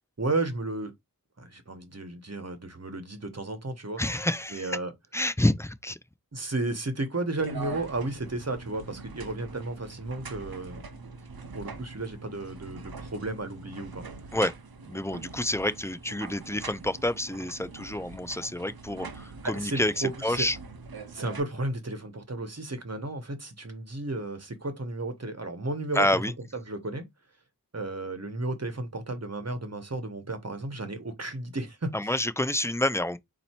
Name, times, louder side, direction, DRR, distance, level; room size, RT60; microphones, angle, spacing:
voice 1, 0.2-0.9 1.4-4.0 4.5-4.9 6.3-10.8 11.5-14.0 19.4-20.5 21.1-26.2 26.5-27.1 27.7-31.9, right 2 dB, 45° right, 1.2 m, -33 dB
voice 2, 4.0-4.8 5.1-6.0 14.3-14.5 14.9-20.6 25.9-26.3 31.9-33.2, left 1 dB, 10° left, 0.5 m, -28 dB
sound 1, 7.4-21.4, right 4 dB, 80° right, 0.8 m, -43 dB
4.2 x 2.8 x 4.3 m
wide cardioid pair, 45°, 36 cm